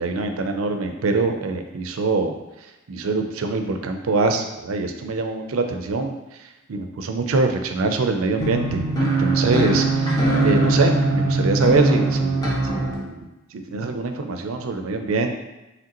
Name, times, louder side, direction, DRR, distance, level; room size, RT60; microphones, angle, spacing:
voice 1, 0.0-2.3 2.9-13.1 13.5-15.3, right 3 dB, 90° right, 6 dB, 0.5 m, -24 dB
sound 1, 8.4-12.9, right 2 dB, 20° left, 0.7 m, -21 dB
5.0 x 3.3 x 2.9 m, 1.0 s
head